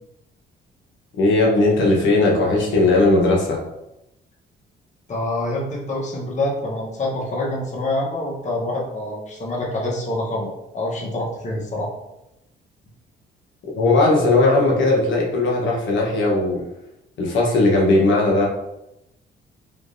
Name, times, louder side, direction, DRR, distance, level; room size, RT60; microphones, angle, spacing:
voice 1, 1.2-3.6 13.8-16.6 17.2-18.5, left 2 dB, 70° left, -3 dB, 1.0 m, -17 dB
voice 2, 5.1-11.9, left 1 dB, 35° left, -3 dB, 1.0 m, -26 dB
3.6 x 3.0 x 2.6 m, 0.88 s
cardioid pair, 90°, 20 cm